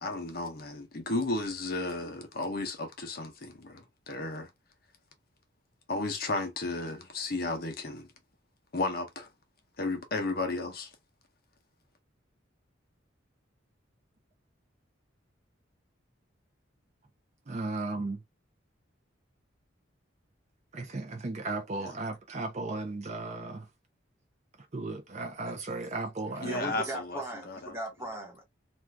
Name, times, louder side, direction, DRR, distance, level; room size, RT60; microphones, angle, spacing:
voice 1, 0.0-4.5 5.9-8.1 8.7-9.3 9.8-10.9 21.8-21.9 26.4-27.8, left 2 dB, 50° left, 0.7 m, -34 dB
voice 2, 17.5-18.2 20.7-23.7 24.7-26.9, right 3 dB, 35° right, 0.4 m, -35 dB
voice 3, 26.4-28.4, right 2 dB, 15° right, 1.1 m, -38 dB
2.5 x 2.3 x 3.2 m
head